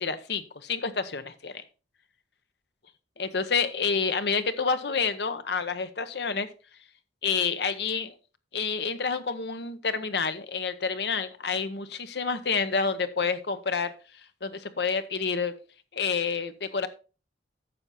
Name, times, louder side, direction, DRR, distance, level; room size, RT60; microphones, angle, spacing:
voice 1, 0.0-1.6 3.2-6.5 7.2-8.1 8.5-13.9 14.4-15.5 15.9-16.9, left 5 dB, 65° left, 11 dB, 0.9 m, -28 dB
9.6 x 6.8 x 4.2 m, 0.34 s
head